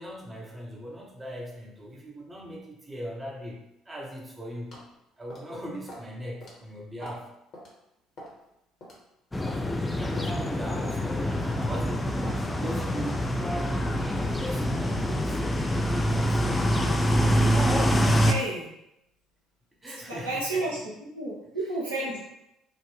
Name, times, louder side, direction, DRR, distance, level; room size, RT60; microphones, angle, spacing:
voice 1, 0.0-4.9 5.2-7.3 9.9-13.3 13.9-16.8 17.9-18.2 19.8-20.6, equal, 20° right, -2 dB, 0.7 m, -40 dB
sound 1, 4.7-4.9 5.3-5.5 5.9-6.1 6.4-6.5 7.0-7.2 7.5-7.7 8.2-8.4 8.8-9.0 9.5-9.6 10.2-10.3 10.8-11.0 11.5-11.8 12.2-12.4 13.0-13.2, equal, 50° left, 1.0 m, -44 dB
sound 2, 9.3-18.3, equal, 15° left, 0.3 m, -25 dB
voice 2, 16.6-16.9 18.2-18.7 20.1-22.3, right 2 dB, 80° right, -6 dB, 0.8 m, -32 dB
3.7 x 2.0 x 3.0 m, 0.83 s
figure-of-eight pair, 55°, 0 cm